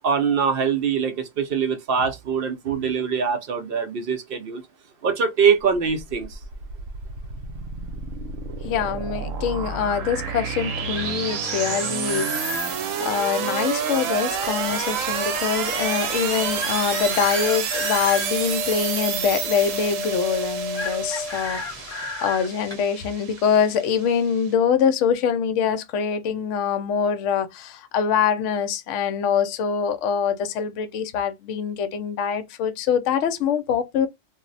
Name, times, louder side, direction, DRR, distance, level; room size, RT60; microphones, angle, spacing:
voice 1, 0.0-4.6 5.0-6.4, right 6 dB, 60° right, 0.6 m, -23 dB
sound 1, 5.7-24.5, right 7 dB, 80° right, 1.0 m, -29 dB
voice 2, 8.6-34.1, left 7 dB, 70° left, 0.9 m, -24 dB
Chicken rooster, 10.7-12.7 16.6-18.3 20.7-22.5, left 3 dB, 45° left, 1.0 m, -33 dB
sound 2, 14.1-22.3 22.6-22.8, left 1 dB, 5° left, 0.9 m, -33 dB
2.4 x 2.0 x 3.8 m
omnidirectional pair, 1.4 m